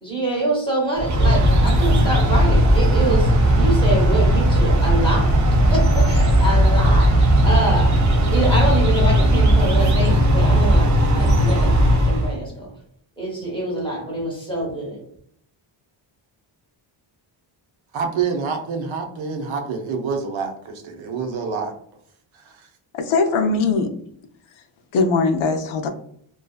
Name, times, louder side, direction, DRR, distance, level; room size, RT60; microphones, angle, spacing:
voice 1, 0.0-7.2 7.4-7.9 8.3-12.7 13.2-15.0, right 1 dB, 10° left, -2 dB, 0.9 m, -25 dB
sound 1, 1.0-12.4, equal, 40° right, 0.5 m, -16 dB
voice 2, 17.9-21.7 22.3-22.7, right 5 dB, 70° right, 3 dB, 0.7 m, -27 dB
voice 3, 22.9-23.9 24.9-25.9, left 4 dB, 75° left, 6 dB, 0.6 m, -20 dB
2.6 x 2.3 x 2.3 m, 0.66 s
wide cardioid pair, 170°, 49 cm